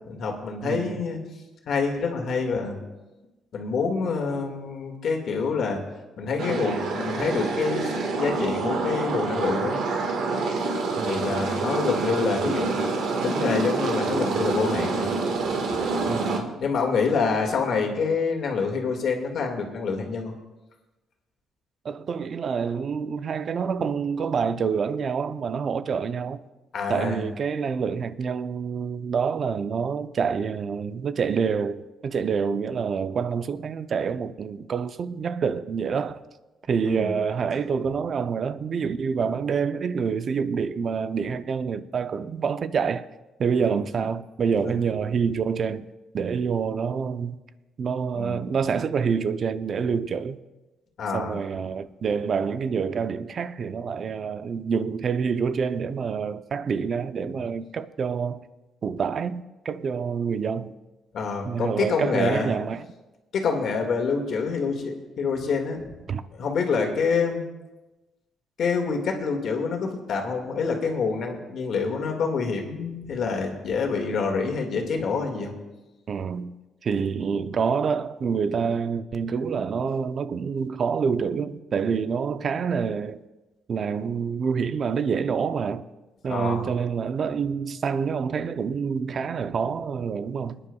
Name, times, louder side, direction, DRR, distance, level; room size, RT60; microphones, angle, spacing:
voice 1, 0.1-1.2 1.7-2.8 3.5-5.8 6.2-9.8 11.1-13.0 13.2-15.1 15.7-16.1 16.6-20.3 26.7-27.2 36.9-37.1 43.6-43.8 44.6-44.7 48.1-48.6 51.0-51.4 57.2-57.4 61.1-62.6 63.3-65.9 66.3-67.5 68.6-75.5 86.3-86.7, left 5 dB, 65° left, 2.0 m, -27 dB
voice 2, 0.6-1.2 11.0-11.4 16.1-16.7 21.8-26.4 26.9-36.2 36.7-43.1 43.4-45.9 46.1-47.4 47.8-50.4 51.1-58.4 58.8-60.7 61.4-62.9 66.1-66.2 76.1-76.6 76.8-83.2 83.7-85.8 86.2-90.7, right 6 dB, 50° right, 0.6 m, -27 dB
sound 1, 6.4-16.4, right 3 dB, 80° right, 1.6 m, -27 dB
27.5 x 9.9 x 2.3 m
cardioid pair, 90°, 0 cm